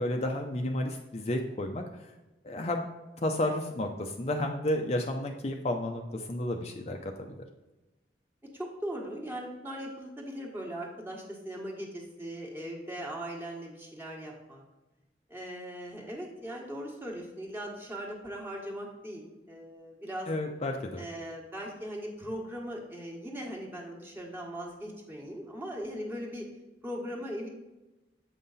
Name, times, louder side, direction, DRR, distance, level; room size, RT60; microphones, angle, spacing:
voice 1, 0.0-1.8 2.4-2.8 3.2-7.3 20.3-21.0, left 1 dB, 35° left, 3 dB, 0.5 m, -31 dB
voice 2, 8.5-14.6 15.3-20.3 21.0-26.5 26.8-27.5, equal, 10° right, -2 dB, 1.4 m, -39 dB
7.6 x 5.6 x 4.0 m, 1.1 s
head